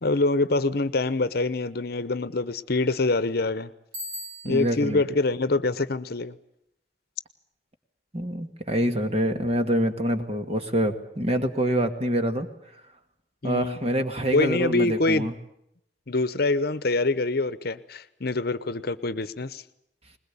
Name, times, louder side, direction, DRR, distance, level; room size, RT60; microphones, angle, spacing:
voice 1, 0.0-3.7 4.4-6.3 13.4-13.8 14.3-15.3 16.1-19.6, left 2 dB, 60° left, 15 dB, 0.9 m, -25 dB
Bicycle bell, 3.9-4.9, equal, 60° right, 6.6 m, -38 dB
voice 2, 4.4-5.0 8.1-12.5 13.4-15.3, equal, 35° right, 7 dB, 1.9 m, -26 dB
21.0 x 21.0 x 8.5 m, 0.78 s
head